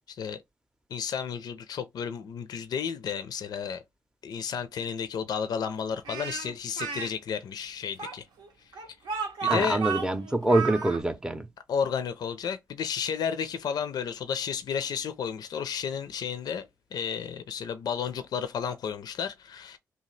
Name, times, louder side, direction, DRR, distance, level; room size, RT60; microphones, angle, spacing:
voice 1, 0.1-0.4 0.9-3.8 4.2-8.3 9.4-9.8 11.7-19.8, left 7 dB, 65° left, 0.4 m, -32 dB
Speech, 6.0-7.1 8.0-11.0, right 6 dB, 80° right, 0.7 m, -33 dB
voice 2, 9.5-11.5, right 2 dB, 10° right, 0.5 m, -25 dB
2.8 x 2.3 x 3.1 m
supercardioid pair, 50°, 7 cm